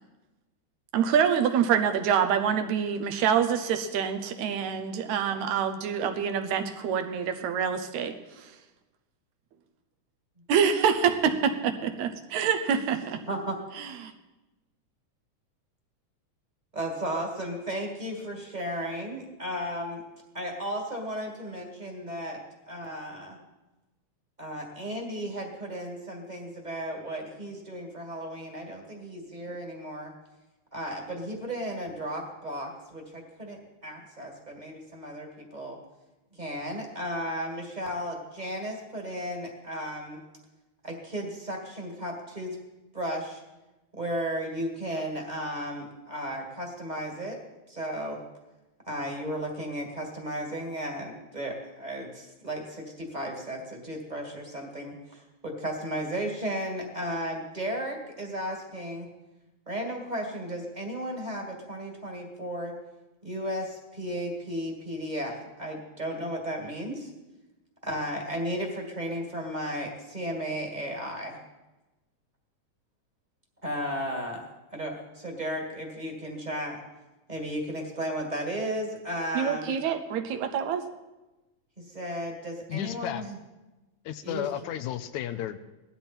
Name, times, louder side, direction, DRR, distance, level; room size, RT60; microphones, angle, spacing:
voice 1, 0.9-8.1 10.5-13.2 13.8-14.1 79.4-80.8, right 7 dB, 75° right, 7 dB, 2.1 m, -26 dB
voice 2, 16.7-20.0 20.3-22.4 22.7-23.4 24.4-30.1 30.7-35.8 36.3-40.2 40.8-42.6 42.9-43.4 44.0-47.4 47.7-48.2 48.9-59.1 59.7-62.7 63.2-67.1 67.8-71.4 73.6-76.8 77.3-79.7 81.8-83.4 84.2-84.7, equal, 15° right, 1 dB, 1.8 m, -34 dB
voice 3, 82.7-83.3 84.1-85.6, left 11 dB, 80° left, 10 dB, 1.9 m, -33 dB
18.0 x 12.5 x 4.4 m, 1.1 s
omnidirectional pair, 3.5 m